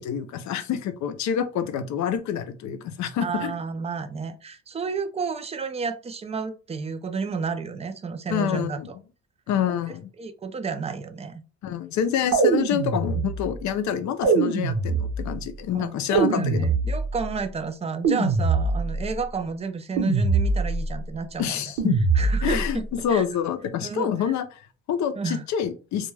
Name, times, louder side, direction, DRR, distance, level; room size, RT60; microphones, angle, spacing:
voice 1, 0.0-3.5 8.3-8.9 9.5-10.1 11.6-16.7 21.4-22.0 22.4-26.1, left 8 dB, 70° left, 0.5 m, -27 dB
voice 2, 3.2-8.8 9.9-11.4 15.7-21.6 22.1-23.2 23.8-24.3 25.2-25.4, right 5 dB, 20° right, 0.4 m, -31 dB
sound 1, 12.3-13.5 14.2-15.4 16.1-17.3 18.0-19.1 20.0-20.9 21.8-22.7, right 4 dB, 70° right, 0.9 m, -23 dB
2.2 x 2.2 x 3.2 m
cardioid pair, 90°, 30 cm